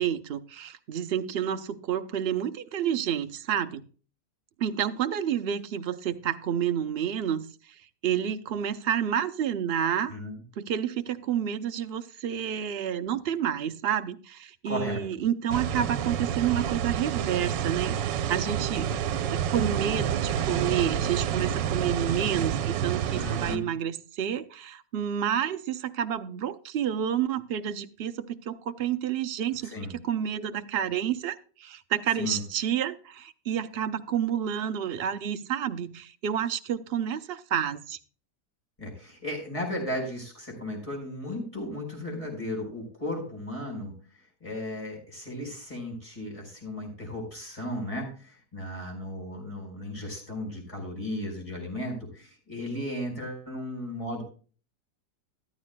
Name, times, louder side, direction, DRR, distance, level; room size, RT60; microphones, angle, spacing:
voice 1, 0.0-3.8 4.6-10.1 10.6-18.9 19.3-38.0, right 9 dB, 60° right, 9 dB, 0.6 m, -29 dB
voice 2, 14.6-15.0 23.1-23.7 29.6-29.9 32.2-32.4 38.8-43.9 44.4-54.2, left 1 dB, 20° left, 1 dB, 4.8 m, -35 dB
sound 1, 15.5-23.6, right 9 dB, 80° right, 1.4 m, -28 dB
14.0 x 12.5 x 2.2 m, 0.38 s
omnidirectional pair, 1.9 m